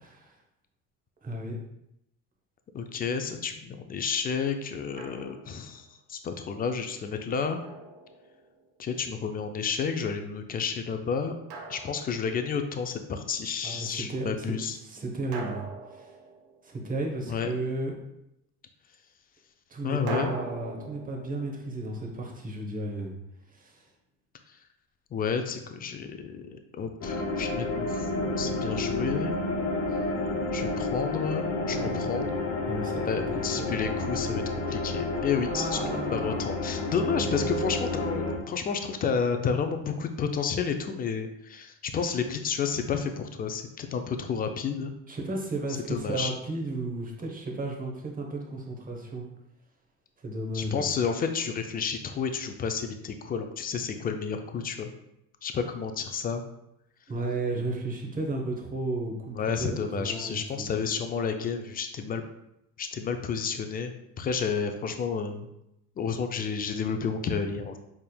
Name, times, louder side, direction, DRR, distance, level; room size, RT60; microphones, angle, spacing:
voice 1, 1.2-1.6 13.6-14.3 14.8-15.7 15.9-16.1 16.6-17.9 19.7-23.2 23.5-23.8 31.7-32.0 32.7-33.8 35.5-36.3 45.1-49.3 50.2-50.9 57.1-60.8, right 2 dB, 20° right, 1 dB, 0.9 m, -33 dB
voice 2, 2.7-7.6 8.8-11.3 11.7-14.8 17.3-17.5 19.8-20.3 24.5-24.6 25.1-26.5 26.7-29.3 30.5-32.3 33.1-44.9 45.9-46.3 50.5-54.9 55.4-56.4 59.3-62.2 62.8-65.5 66.0-67.8, left 6 dB, 25° left, 6 dB, 0.3 m, -31 dB
Drum, 5.0-5.6 7.6-8.7 11.5-12.7 15.3-17.0 20.1-23.0, right 3 dB, 80° right, 0.7 m, -41 dB
sound 1, 27.0-38.4, left 2 dB, 40° left, 0.9 m, -30 dB
4.3 x 3.4 x 2.2 m, 0.82 s
supercardioid pair, 95°, 39 cm